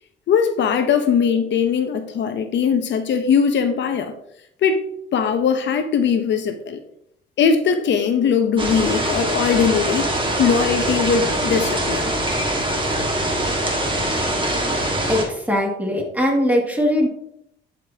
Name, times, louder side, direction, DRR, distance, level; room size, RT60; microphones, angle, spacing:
voice 1, 0.3-4.1 4.6-4.8 5.1-6.8 7.4-10.1 10.4-12.1, left 6 dB, 65° left, 8 dB, 0.8 m, -20 dB
sound 1, 8.6-15.2, right 1 dB, 25° right, 1.8 m, -23 dB
voice 2, 15.1-17.1, left 1 dB, 5° right, -1 dB, 2.3 m, -20 dB
11.0 x 5.1 x 2.9 m, 0.73 s
cardioid pair, 90°, 20 cm